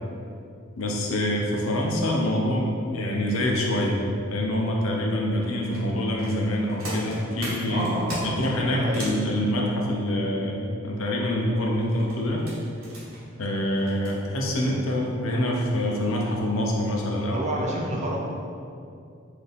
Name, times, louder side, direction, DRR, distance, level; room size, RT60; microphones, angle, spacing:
voice 1, 0.8-4.0 4.3-12.4 13.4-17.7, left 1 dB, 90° left, -1 dB, 0.6 m, -26 dB
sound 1, 5.4-9.2 11.7-14.1 14.9-15.0 15.4-15.6 16.1-16.3 16.7-16.8, right 1 dB, 85° right, 1.1 m, -38 dB
voice 2, 7.7-9.1 17.3-18.2, right 1 dB, 35° right, -2 dB, 0.6 m, -30 dB
3.9 x 2.8 x 3.5 m, 2.4 s
head